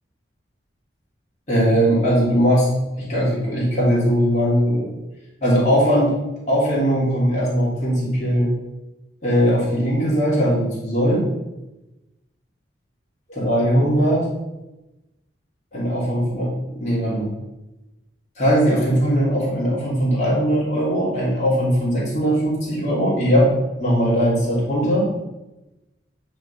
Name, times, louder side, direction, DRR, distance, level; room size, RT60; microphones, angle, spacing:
voice 1, 1.5-2.7 3.0-4.9 5.4-6.1 6.5-8.5 9.2-11.3 13.3-14.3 15.7-17.3 18.4-23.5 23.8-25.1, equal, 40° left, -7 dB, 3.0 m, -19 dB
9.3 x 4.1 x 5.6 m, 1.0 s
head